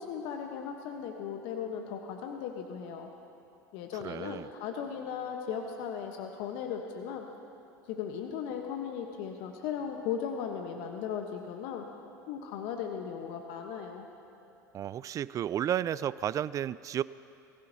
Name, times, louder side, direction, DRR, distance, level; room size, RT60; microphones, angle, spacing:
voice 1, 0.0-3.1 3.7-7.3 7.9-11.9 12.3-14.1, left 7 dB, 60° left, 3 dB, 1.1 m, -37 dB
voice 2, 4.0-4.5 14.7-17.0, right 10 dB, 35° right, 18 dB, 0.4 m, -32 dB
22.5 x 15.5 x 2.8 m, 2.9 s
hypercardioid pair, 80°, 10 cm